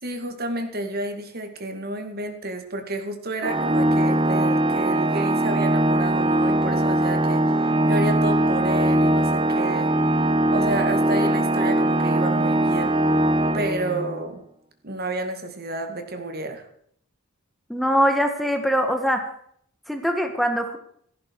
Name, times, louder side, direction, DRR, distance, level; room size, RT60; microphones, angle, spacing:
voice 1, 0.0-9.9 10.5-13.0 13.5-14.4 14.8-16.6, right 2 dB, 50° right, 6 dB, 2.3 m, -30 dB
Organ, 3.4-14.2, right 1 dB, 25° right, 1.0 m, -21 dB
voice 2, 17.7-19.3 19.9-20.8, equal, ahead, 5 dB, 1.6 m, -22 dB
17.0 x 14.5 x 4.8 m, 0.65 s
head